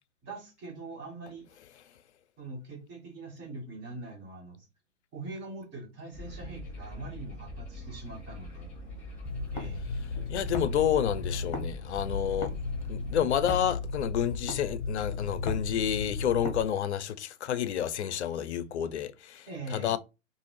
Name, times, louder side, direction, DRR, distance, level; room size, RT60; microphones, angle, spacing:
voice 1, 0.2-1.5 2.4-4.7 5.1-8.7 9.5-9.9 19.5-20.0, right 2 dB, 25° right, 1.8 m, -42 dB
sound 1, 6.1-13.2, left 1 dB, 5° left, 2.0 m, -43 dB
sound 2, 9.2-11.7 12.0-16.6, left 3 dB, 35° left, 1.0 m, -34 dB
voice 2, 10.3-12.5 12.9-20.0, left 10 dB, 60° left, 0.5 m, -29 dB
3.7 x 2.5 x 3.2 m
figure-of-eight pair, 115°, 39 cm